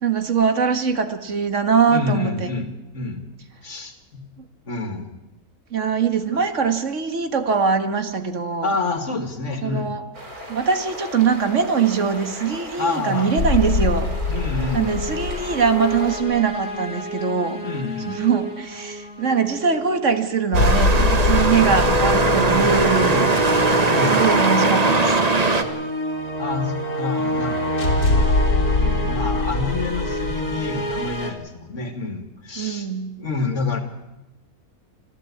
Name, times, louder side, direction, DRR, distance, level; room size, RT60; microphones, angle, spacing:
voice 1, 0.0-2.5 5.7-8.7 9.6-10.0 10.5-14.1 14.7-17.6 18.1-23.3 24.1-25.2 32.6-33.1, right 6 dB, 55° right, 8 dB, 1.9 m, -22 dB
voice 2, 1.9-3.3 3.6-4.2 4.7-5.2 6.3-6.4 8.6-9.9 12.8-13.4 14.3-15.3 17.6-18.2 21.5-22.0 22.5-22.7 23.0-23.5 23.9-24.3 26.4-27.7 28.8-32.9 33.2-33.8, left 3 dB, 55° left, 7 dB, 2.5 m, -28 dB
sound 1, 10.1-16.2, equal, 80° right, 4.7 m, -37 dB
sound 2, 13.4-31.3, left 2 dB, 85° left, 2.8 m, -25 dB
sound 3, 20.5-25.6, right 3 dB, 25° right, 1.3 m, -19 dB
25.0 x 15.0 x 8.5 m, 0.97 s
omnidirectional pair, 1.6 m